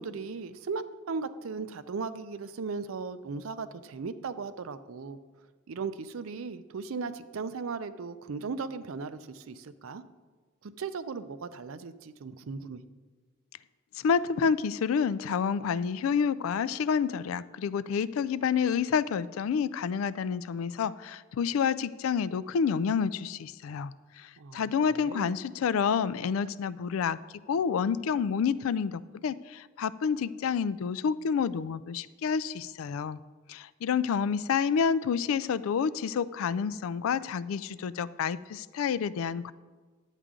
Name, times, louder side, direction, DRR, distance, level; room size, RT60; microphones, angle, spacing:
voice 1, 0.0-5.2 5.7-10.0 10.6-12.8 24.4-25.3, right 4 dB, 80° right, 13 dB, 0.5 m, -37 dB
voice 2, 14.0-23.9 24.5-27.2 27.5-33.2 33.5-39.5, left 6 dB, 85° left, 17 dB, 0.3 m, -29 dB
10.0 x 8.1 x 3.7 m, 1.4 s
head